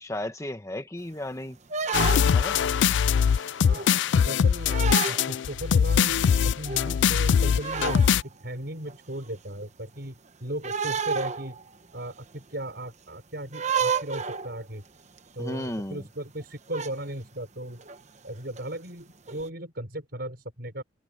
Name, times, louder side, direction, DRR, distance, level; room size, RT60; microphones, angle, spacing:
voice 1, 0.0-1.6 2.3-2.6 15.4-16.0, left 1 dB, 15° left, 1.3 m, -34 dB
sound 1, 1.7-2.5 3.0-3.3 3.7-4.0 4.7-5.3 5.9-6.0 6.2-6.3 6.7-7.0 7.6-8.2 8.9-9.0 10.6-11.7 12.0-12.1 13.5-14.6 15.2-15.3 15.5-15.8 16.7-16.9 17.8-18.0 18.6-18.7 19.3-19.5, right 6 dB, 40° right, 1.0 m, -30 dB
sound 2, 1.9-8.2, left 7 dB, 70° left, 0.3 m, -22 dB
voice 2, 4.2-4.8 5.1-6.2 6.4-11.6 11.9-14.8 15.3-17.8 18.2-20.8, right 1 dB, 60° right, 5.6 m, -36 dB
head